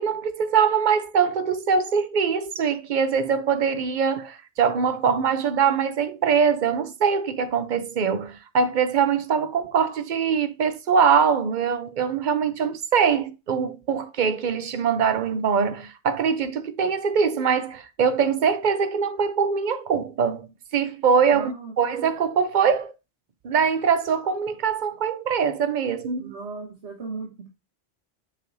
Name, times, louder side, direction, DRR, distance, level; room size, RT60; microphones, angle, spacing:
voice 1, 0.0-22.9 23.4-26.3, right 6 dB, 50° right, 0.7 m, -23 dB
voice 2, 21.3-21.7 26.2-27.5, right 4 dB, 70° right, 1.6 m, -36 dB
7.6 x 4.7 x 2.6 m
omnidirectional pair, 1.2 m